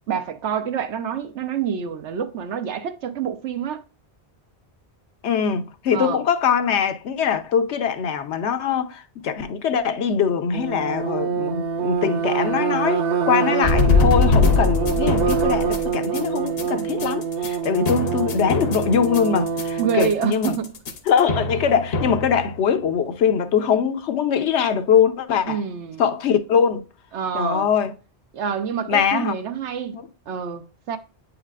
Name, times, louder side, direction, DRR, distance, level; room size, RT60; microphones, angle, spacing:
voice 1, 0.1-3.8 5.9-6.2 17.8-18.2 19.8-20.8 25.5-26.0 27.1-27.7 28.3-30.0 30.3-31.0, right 8 dB, 90° right, 1.1 m, -27 dB
voice 2, 5.2-20.6 21.1-25.6 26.0-26.8 27.3-27.9 28.9-29.3 29.9-30.1, left 7 dB, 80° left, 1.0 m, -22 dB
sound 1, 10.5-20.2, right 6 dB, 65° right, 0.8 m, -25 dB
sound 2, 13.6-22.8, left 3 dB, 65° left, 1.0 m, -23 dB
8.1 x 4.9 x 2.4 m
omnidirectional pair, 1.1 m